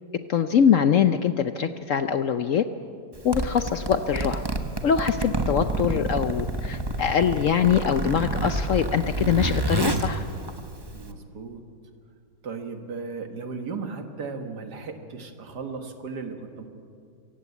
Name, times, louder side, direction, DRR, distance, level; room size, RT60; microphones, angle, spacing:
voice 1, 0.3-2.7 3.2-4.4 4.8-10.2, left 8 dB, 60° left, 10 dB, 0.8 m, -23 dB
Zipper (clothing), 3.1-11.1, right 2 dB, 15° right, 0.9 m, -28 dB
voice 2, 10.9-11.6 12.4-16.7, right 4 dB, 70° right, 6 dB, 2.1 m, -36 dB
25.5 x 15.5 x 8.3 m, 2.4 s
omnidirectional pair, 1.9 m